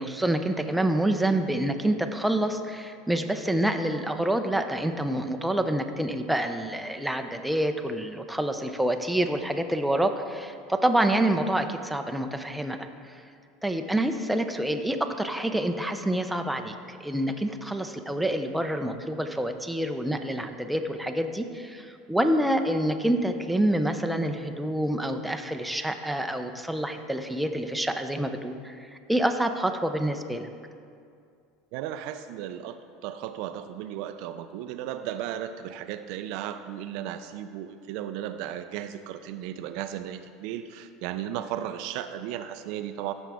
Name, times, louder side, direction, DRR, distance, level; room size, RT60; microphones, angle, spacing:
voice 1, 0.0-12.9 13.6-30.5, right 1 dB, 5° right, 5 dB, 0.5 m, -27 dB
voice 2, 31.7-43.1, right 11 dB, 65° right, 10 dB, 0.4 m, -35 dB
15.0 x 6.1 x 3.6 m, 2.3 s
supercardioid pair, 130°, 0 cm